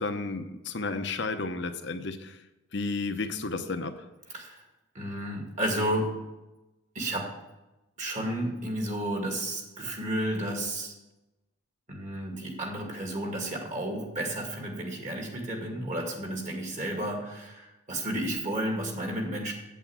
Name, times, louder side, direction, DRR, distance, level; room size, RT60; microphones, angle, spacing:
voice 1, 0.0-2.4 2.7-4.0, left 3 dB, 60° left, 8 dB, 0.9 m, -32 dB
voice 2, 4.3-4.6 4.9-6.2 6.9-7.3 8.0-10.9 11.9-19.5, right 1 dB, 35° right, 1 dB, 2.3 m, -32 dB
8.4 x 8.4 x 7.1 m, 1.0 s
head